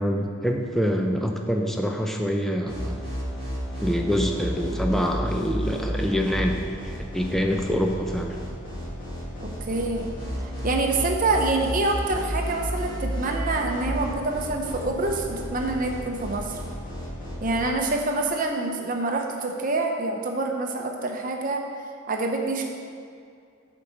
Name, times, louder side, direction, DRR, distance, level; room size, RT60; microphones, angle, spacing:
voice 1, 0.0-3.0 3.8-8.4, equal, ahead, 2 dB, 0.4 m, -25 dB
sound 1, 2.7-17.6, equal, 40° left, 2.0 m, -33 dB
voice 2, 9.4-10.1 10.4-16.6 17.4-21.6 22.1-22.6, right 2 dB, 40° right, 2 dB, 0.8 m, -26 dB
6.8 x 4.6 x 6.2 m, 2.3 s
head